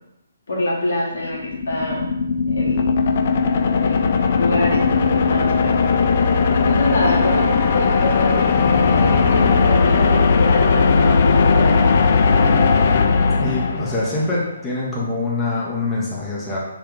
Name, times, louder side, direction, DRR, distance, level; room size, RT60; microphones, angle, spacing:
voice 1, 0.5-2.1 2.5-2.9 3.8-5.8 6.6-8.4 8.9-12.0 12.2-12.5, left 1 dB, 65° left, -3 dB, 1.1 m, -25 dB
sound 1, 1.2-14.3, left 5 dB, 45° left, 0.3 m, -17 dB
voice 2, 13.4-16.6, left 2 dB, 10° left, -7 dB, 0.8 m, -24 dB
3.5 x 2.8 x 3.7 m, 0.85 s
figure-of-eight pair, 140°, 0 cm